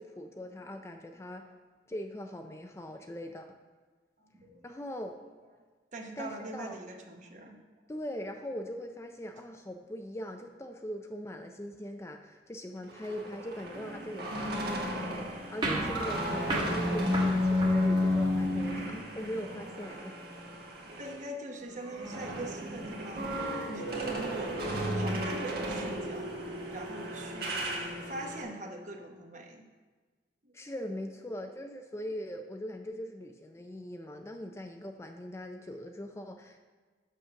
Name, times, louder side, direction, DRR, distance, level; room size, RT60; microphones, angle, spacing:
voice 1, 0.0-1.5 1.9-3.5 4.6-5.2 6.2-6.8 7.9-20.2 30.5-36.6, equal, 15° left, 4 dB, 0.4 m, -41 dB
voice 2, 4.2-4.6 5.9-7.6 21.0-23.3 23.7-26.4 26.7-27.7 28.0-29.7 30.4-30.5, right 1 dB, 40° right, 3 dB, 1.0 m, -42 dB
sound 1, 12.8-21.2 21.6-28.4, left 1 dB, 60° right, 1.5 m, -33 dB
sound 2, 15.6-18.5, right 1 dB, 25° right, 1.3 m, -35 dB
6.6 x 6.3 x 5.8 m, 1.4 s
head